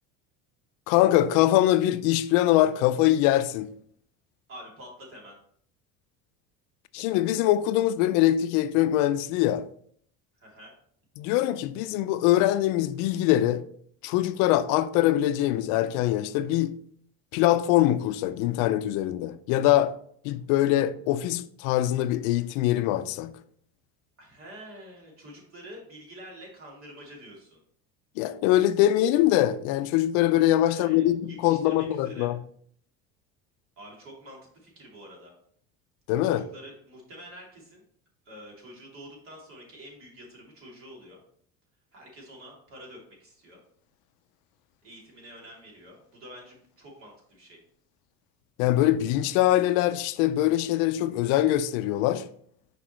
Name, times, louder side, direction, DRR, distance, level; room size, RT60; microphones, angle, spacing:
voice 1, 0.9-3.7 6.9-9.7 11.2-13.7 14.0-16.7 17.3-19.9 20.2-23.3 28.2-32.4 36.1-36.5 48.6-52.2, left 13 dB, 75° left, 0.5 m, -23 dB
voice 2, 4.5-5.4 10.4-10.7 24.2-27.6 30.6-32.3 33.8-35.3 36.2-37.8 38.2-41.2 41.9-43.6 44.8-47.6, equal, 45° right, 2.7 m, -47 dB
6.1 x 5.3 x 3.0 m
cardioid pair, 140°, 30 cm